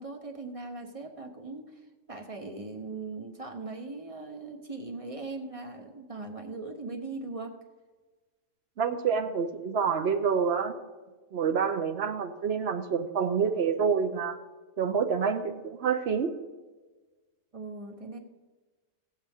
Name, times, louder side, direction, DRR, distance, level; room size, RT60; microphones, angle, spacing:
voice 1, 0.0-1.8 2.1-7.5 17.5-18.2, right 3 dB, 30° right, 4 dB, 0.9 m, -39 dB
voice 2, 8.8-10.7 11.3-14.4 14.8-16.3, right 6 dB, 60° right, 8 dB, 0.9 m, -27 dB
17.5 x 7.4 x 3.5 m, 1.3 s
omnidirectional pair, 1.4 m